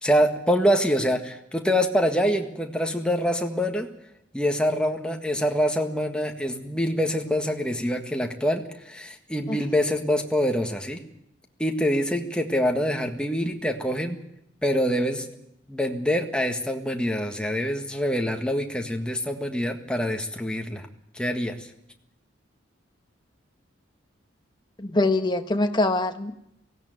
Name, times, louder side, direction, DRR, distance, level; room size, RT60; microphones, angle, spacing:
voice 1, 0.0-3.9 4.3-11.0 11.6-14.2 14.6-15.3 15.7-20.9 21.1-21.5, equal, 5° left, 3 dB, 1.6 m, -25 dB
voice 2, 24.8-26.4, left 2 dB, 25° left, 7 dB, 1.2 m, -23 dB
17.5 x 16.5 x 9.3 m, 0.78 s
head